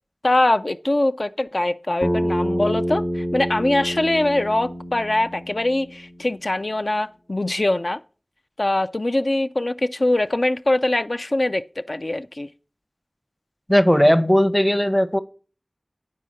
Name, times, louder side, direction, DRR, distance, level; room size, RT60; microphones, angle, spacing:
voice 1, 0.2-8.0 8.6-12.5, left 1 dB, 55° left, 0.3 m, -22 dB
Bass guitar, 2.0-6.3, equal, 35° left, 0.9 m, -27 dB
voice 2, 13.7-15.2, equal, 5° left, 0.7 m, -17 dB
9.6 x 4.6 x 6.2 m
wide cardioid pair, 45°, 0 cm